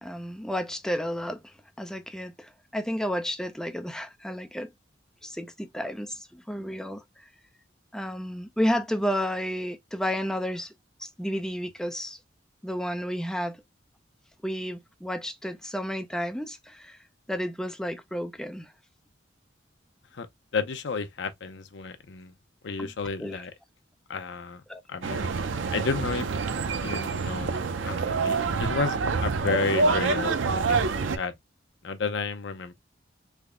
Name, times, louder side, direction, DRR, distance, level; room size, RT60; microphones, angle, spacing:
voice 1, 0.0-4.7 5.2-7.3 7.9-10.7 11.0-12.2 12.6-13.6 14.4-17.0 17.3-18.7 22.8-22.9 23.2-23.5 24.7-24.8, equal, 5° left, 0.4 m, -32 dB
voice 2, 20.5-22.3 22.6-23.5 24.1-24.6 24.9-25.3 25.7-26.3 26.8-30.8 31.1-31.3 31.8-32.7, left 4 dB, 65° left, 0.6 m, -32 dB
sound 1, 25.0-31.2, right 4 dB, 85° right, 0.5 m, -27 dB
3.5 x 2.0 x 3.5 m
head